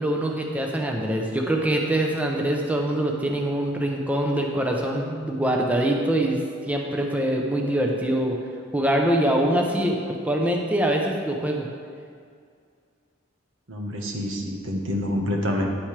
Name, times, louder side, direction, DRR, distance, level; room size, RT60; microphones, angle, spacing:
voice 1, 0.0-6.4 6.7-8.4 8.7-11.7, right 1 dB, 10° right, 1 dB, 0.7 m, -24 dB
voice 2, 13.7-15.7, left 1 dB, 80° right, 0 dB, 1.3 m, -27 dB
10.5 x 9.0 x 3.3 m, 2.2 s
head